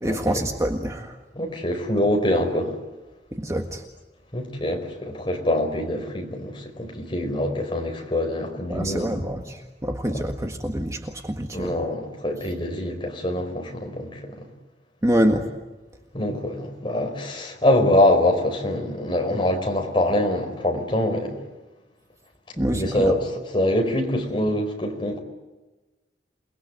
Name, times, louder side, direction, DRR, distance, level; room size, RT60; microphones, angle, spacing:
voice 1, 0.0-1.2 3.3-3.8 8.7-11.7 15.0-15.5 22.6-23.1, equal, 15° right, 4 dB, 1.7 m, -25 dB
voice 2, 1.3-2.8 4.3-9.2 11.5-14.4 16.1-21.4 22.7-25.2, left 1 dB, 30° left, 3 dB, 4.8 m, -24 dB
28.5 x 20.5 x 9.3 m, 1.1 s
head